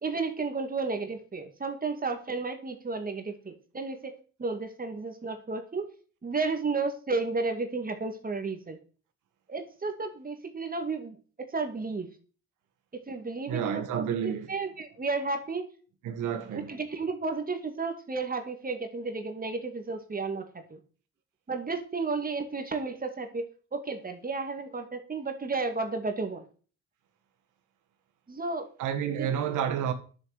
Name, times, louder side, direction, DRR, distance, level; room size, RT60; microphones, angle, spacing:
voice 1, 0.0-5.9 6.2-8.8 9.5-12.1 12.9-15.6 16.5-20.8 21.5-26.4 28.3-28.7 29.1-29.3, right 4 dB, 30° right, 2.5 m, -33 dB
voice 2, 13.5-14.5 16.0-16.7 28.8-29.9, right 8 dB, 85° right, 2.0 m, -30 dB
11.0 x 7.2 x 8.0 m
cardioid pair, 90°, 30 cm